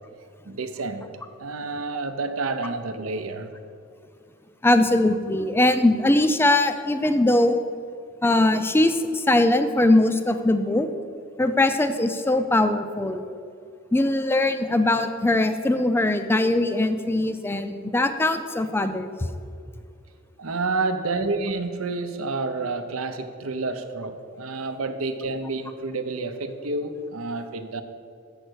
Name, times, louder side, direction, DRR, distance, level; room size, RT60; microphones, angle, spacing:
voice 1, 0.5-1.1 1.4-3.5 20.4-27.8, right 3 dB, 85° right, 9 dB, 0.7 m, -29 dB
voice 2, 4.6-7.6 8.2-10.9 11.4-13.2 13.9-19.1, left 1 dB, 10° left, 9 dB, 0.4 m, -21 dB
7.8 x 6.5 x 6.2 m, 2.4 s
head